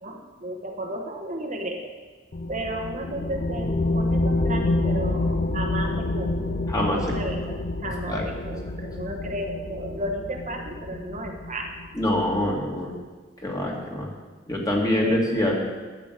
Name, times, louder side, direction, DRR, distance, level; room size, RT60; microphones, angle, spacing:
voice 1, 0.0-1.9 2.5-6.6 6.9-11.7 15.0-15.3, right 1 dB, 40° right, 2 dB, 1.2 m, -33 dB
sound 1, 2.3-12.3, left 2 dB, 45° left, 0.7 m, -28 dB
voice 2, 6.7-7.0 8.1-8.2 12.0-13.0 13.4-14.1 14.5-15.5, left 1 dB, 20° left, -2 dB, 2.3 m, -25 dB
12.0 x 8.1 x 6.6 m, 1.4 s
head